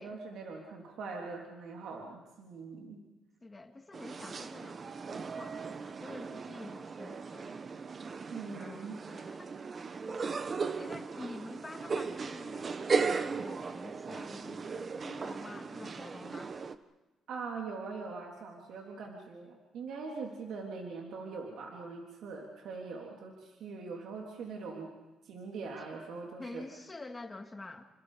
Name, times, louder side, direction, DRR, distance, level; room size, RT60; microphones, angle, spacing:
voice 1, 0.0-3.0 8.3-9.0 17.3-24.9 25.2-26.7, right 4 dB, 75° right, 0 dB, 3.4 m, -42 dB
voice 2, 3.4-7.5 8.3-9.5 10.8-16.5 26.4-27.9, left 2 dB, 20° left, 4 dB, 2.6 m, -48 dB
sound 1, 3.9-16.8, right 5 dB, 40° right, 1.2 m, -37 dB
28.5 x 26.5 x 5.1 m, 1.1 s
cardioid pair, 90°, 0 cm